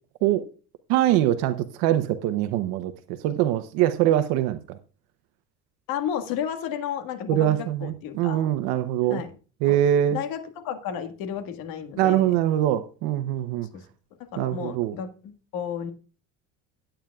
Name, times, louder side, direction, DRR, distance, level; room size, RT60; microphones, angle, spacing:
voice 1, 0.9-4.8 7.3-9.2 9.6-10.2 12.0-13.7 14.4-15.0, right 12 dB, 90° right, 0.9 m, -23 dB
voice 2, 5.9-8.5 9.1-9.3 9.7-9.8 10.1-12.3 13.7-13.8 14.3-15.9, left 8 dB, 75° left, 1.8 m, -32 dB
15.5 x 9.0 x 2.4 m
cardioid pair, 135°, 35 cm